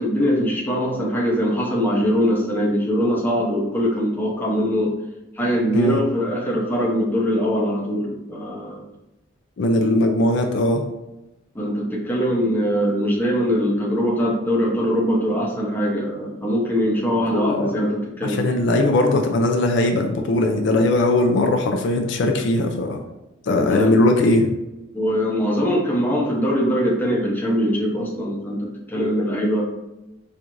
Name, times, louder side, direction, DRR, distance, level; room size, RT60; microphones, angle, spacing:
voice 1, 0.0-4.9 5.4-8.9 11.5-18.4 23.7-24.0 24.9-29.6, equal, 10° left, -4 dB, 0.7 m, -22 dB
voice 2, 9.6-10.8 17.3-17.7 18.2-23.0 23.4-24.5, left 2 dB, 65° left, 4 dB, 0.4 m, -19 dB
4.5 x 2.4 x 2.5 m, 0.95 s
head